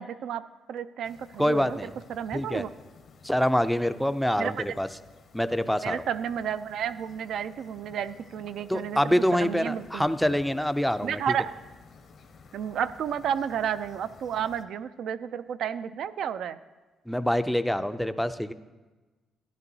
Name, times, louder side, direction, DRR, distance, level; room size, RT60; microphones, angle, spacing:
voice 1, 0.0-2.7 4.4-4.6 5.8-10.1 11.0-11.5 12.5-16.6, right 8 dB, 70° right, 13 dB, 0.3 m, -32 dB
sound 1, 1.0-14.6, left 5 dB, 55° left, 0.8 m, -53 dB
voice 2, 1.4-1.9 2.3-2.6 3.2-4.9 5.3-6.0 8.7-11.2 17.1-18.5, equal, ahead, 11 dB, 0.4 m, -25 dB
12.5 x 10.0 x 2.7 m, 1.3 s
cardioid pair, 90°, 0 cm